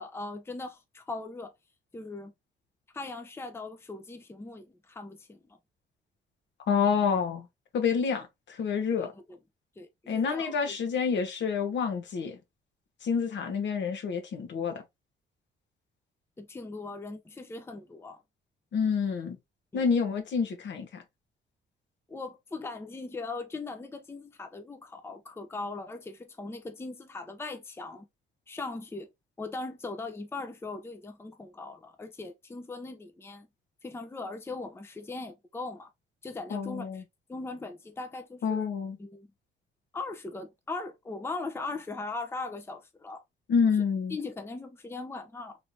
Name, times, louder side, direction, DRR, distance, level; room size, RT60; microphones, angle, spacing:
voice 1, 0.0-1.5 1.9-2.3 2.9-5.4 9.0-9.4 9.8-10.8 16.4-18.2 19.7-19.8 22.1-28.1 28.5-29.1 29.4-33.5 33.8-35.9 36.2-37.0 37.3-38.7 39.0-39.3 39.9-43.2 44.1-45.6, left 3 dB, 10° left, 0.6 m, -39 dB
voice 2, 6.7-7.4 7.7-8.3 8.6-9.1 10.1-12.4 13.0-14.8 18.7-19.4 19.7-21.0 36.5-37.0 38.4-38.9 43.5-44.2, left 6 dB, 65° left, 1.1 m, -28 dB
3.2 x 3.0 x 2.6 m
cardioid pair, 90°, 20 cm